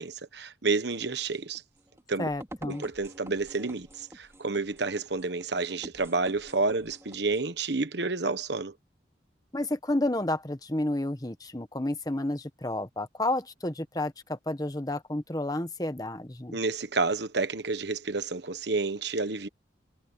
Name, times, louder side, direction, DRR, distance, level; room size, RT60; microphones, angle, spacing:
voice 1, 0.0-1.6 2.1-2.3 2.7-8.7 16.5-19.5, right 3 dB, 65° right, 1.3 m, -30 dB
sound 1, 0.9-7.4, right 1 dB, 15° right, 2.7 m, -49 dB
voice 2, 2.2-2.8 9.5-16.6, left 1 dB, 20° left, 1.1 m, -31 dB
head